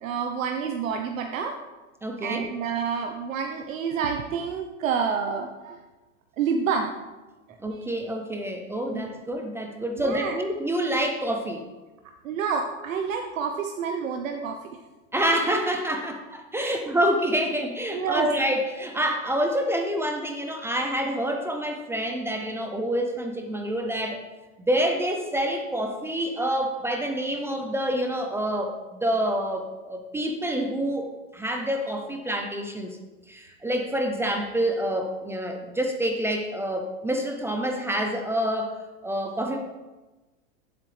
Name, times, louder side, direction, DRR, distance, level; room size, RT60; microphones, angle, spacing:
voice 1, 0.0-1.6 2.2-5.8 6.4-6.9 7.7-7.9 8.9-9.1 10.0-10.4 12.2-14.7 16.6-16.8 17.9-18.3, right 6 dB, 90° right, 4 dB, 0.9 m, -28 dB
voice 2, 2.0-2.6 7.6-11.7 15.1-24.2 24.7-31.1 31.3-33.0 33.3-38.8 39.0-39.6, right 1 dB, 5° right, 3 dB, 0.4 m, -27 dB
10.5 x 7.8 x 3.3 m, 1.2 s
supercardioid pair, 130°, 39 cm